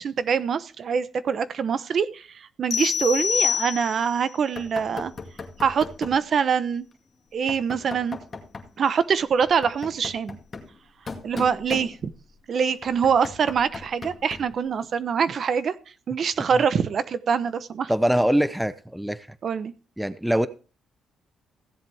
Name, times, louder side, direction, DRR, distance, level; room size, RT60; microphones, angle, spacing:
voice 1, 0.0-2.3 2.6-5.1 5.6-6.9 7.3-8.2 8.8-10.4 11.2-12.1 12.5-15.7 16.1-17.9 19.4-19.7, right 6 dB, 55° right, 13 dB, 0.9 m, -24 dB
sound 1, 2.7-4.2, left 7 dB, 55° left, 0.6 m, -25 dB
Knock, 4.6-6.3 7.5-8.8 9.4-12.3 12.8-14.6, left 4 dB, 35° left, 2.1 m, -39 dB
voice 2, 17.9-19.3 20.0-20.5, equal, 5° right, 13 dB, 0.8 m, -23 dB
16.0 x 7.6 x 3.5 m, 0.36 s
cardioid pair, 90°, 0 cm